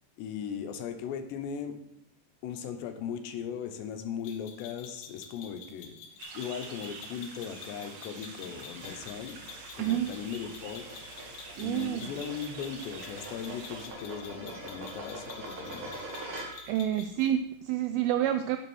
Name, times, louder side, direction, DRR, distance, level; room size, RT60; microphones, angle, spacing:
voice 1, 0.2-1.8 2.4-6.0 6.3-9.4 9.8-11.0 11.6-16.0, left 7 dB, 90° left, 7 dB, 3.3 m, -38 dB
sound 1, 4.2-17.3, left 6 dB, 70° left, 3.0 m, -49 dB
sound 2, 6.2-13.9, right 4 dB, 60° right, 2.2 m, -47 dB
sound 3, 8.7-16.8, right 1 dB, 45° right, 1.9 m, -44 dB
voice 2, 9.8-10.1 11.6-12.0 16.7-18.6, right 11 dB, 90° right, 9 dB, 2.1 m, -28 dB
11.5 x 6.6 x 6.2 m, 0.76 s
omnidirectional pair, 4.8 m